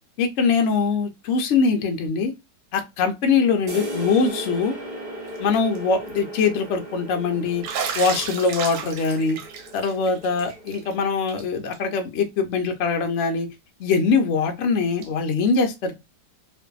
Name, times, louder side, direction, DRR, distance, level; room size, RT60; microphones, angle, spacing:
voice 1, 0.2-2.3 2.7-4.8 5.4-7.6 7.9-9.4 9.7-13.5 13.8-15.9, left 5 dB, 70° left, 0.7 m, -22 dB
sound 1, 3.7-11.2, right 1 dB, 45° right, 0.9 m, -36 dB
Bathtub (filling or washing), 5.4-5.8 6.1-6.2 7.6-10.9 11.3-11.4 11.7-11.8 13.2-13.3 15.0-15.1, right 6 dB, 85° right, 1.3 m, -33 dB
2.6 x 2.5 x 2.3 m
omnidirectional pair, 1.8 m